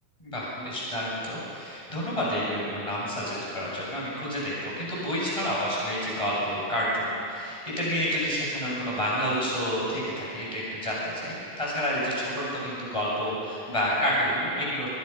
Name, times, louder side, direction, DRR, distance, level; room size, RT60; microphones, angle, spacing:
voice 1, 0.2-14.9, equal, 10° left, -6 dB, 7.1 m, -29 dB
26.0 x 21.0 x 5.6 m, 2.5 s
omnidirectional pair, 3.5 m